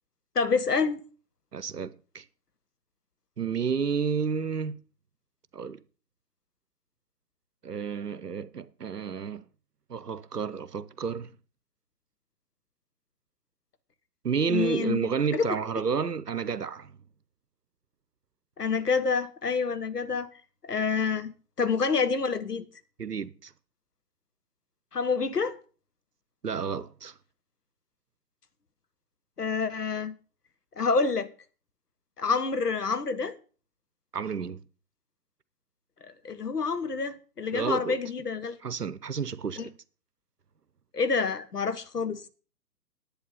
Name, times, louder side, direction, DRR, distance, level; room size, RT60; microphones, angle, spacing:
voice 1, 0.3-1.0 14.5-15.1 15.3-15.5 18.6-20.3 20.6-21.3 21.6-22.6 24.9-25.6 29.4-30.1 30.8-31.3 32.2-33.4 36.2-38.6 39.6-39.7 40.9-42.2, left 5 dB, 70° left, 1.3 m, -27 dB
voice 2, 1.5-2.2 3.4-4.8 5.5-5.8 7.6-9.4 9.9-11.3 14.2-16.9 23.0-23.5 26.4-27.1 34.1-34.6 37.5-38.0 38.6-39.7, right 6 dB, 75° right, 0.9 m, -30 dB
10.5 x 8.5 x 5.4 m
figure-of-eight pair, 135°, 48 cm